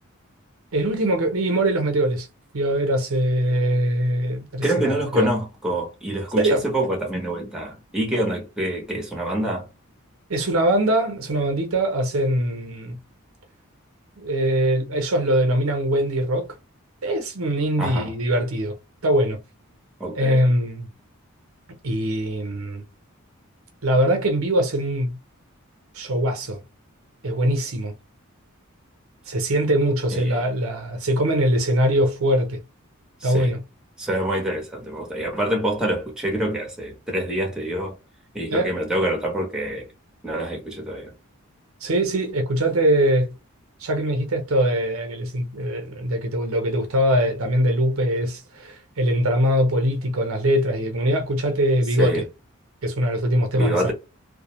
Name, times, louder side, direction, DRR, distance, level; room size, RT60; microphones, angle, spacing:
voice 1, 0.7-2.3 2.5-5.3 6.4-6.6 10.3-13.0 14.2-16.5 17.0-18.8 19.0-19.4 20.1-20.9 21.8-22.8 23.8-25.2 25.9-26.6 27.2-27.9 29.3-32.6 33.2-33.6 38.5-38.7 41.8-43.3 43.8-52.2 52.8-53.9, right 1 dB, 75° right, 0.8 m, -22 dB
voice 2, 4.6-9.7 17.8-18.1 20.0-20.4 30.1-30.4 33.2-33.5 34.0-38.0 38.3-39.9 40.2-41.1 52.0-52.2 53.6-53.9, right 1 dB, 5° right, 0.8 m, -26 dB
2.4 x 2.1 x 3.0 m
head